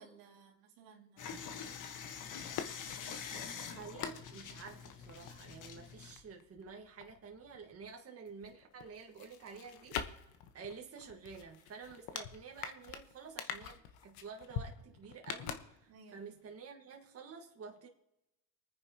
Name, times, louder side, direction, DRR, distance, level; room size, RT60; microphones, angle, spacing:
voice 1, 0.0-1.7 15.9-16.2, right 5 dB, 70° right, 2.4 m, -59 dB
sound 1, 1.2-6.1, left 7 dB, 50° left, 1.5 m, -45 dB
sound 2, 1.4-7.9 8.3-16.2 16.5-16.6, left 8 dB, 70° left, 1.2 m, -46 dB
voice 2, 3.3-10.2 10.5-17.9, right 5 dB, 35° right, 1.6 m, -50 dB
24.5 x 9.5 x 2.9 m
supercardioid pair, 95°, 38 cm